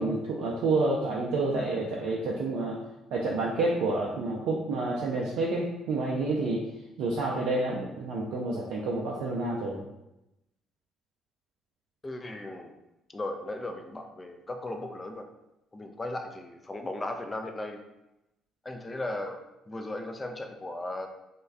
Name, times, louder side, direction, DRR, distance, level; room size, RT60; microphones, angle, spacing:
voice 1, 0.0-2.8 3.1-6.6 7.0-9.8, right 2 dB, 60° right, -3 dB, 0.4 m, -29 dB
voice 2, 12.0-12.7 13.1-15.3 15.7-17.8 18.6-19.4 19.7-21.1, left 1 dB, 25° left, 5 dB, 0.4 m, -36 dB
3.0 x 2.2 x 3.4 m, 0.91 s
figure-of-eight pair, 45°, 0 cm